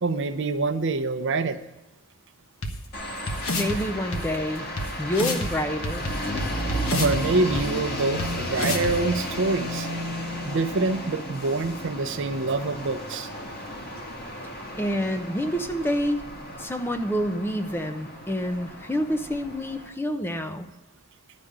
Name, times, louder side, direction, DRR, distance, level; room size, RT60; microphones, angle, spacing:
voice 1, 0.0-1.6 6.9-9.9 10.4-13.3, right 3 dB, 60° right, 10 dB, 0.7 m, -26 dB
sound 1, 2.6-2.7 3.3-3.8 4.1-4.2 4.8-4.9 5.1-5.5 5.8-7.2 7.6-7.7 8.2-8.3 8.6-8.9, left 2 dB, 70° left, 1.3 m, -28 dB
sound 2, 2.9-19.9, equal, 45° left, 2.0 m, -34 dB
voice 2, 3.5-4.7 5.0-6.3 14.8-16.2 16.6-20.7, equal, 10° left, 7 dB, 0.6 m, -28 dB
12.0 x 5.2 x 8.6 m, 1.0 s
head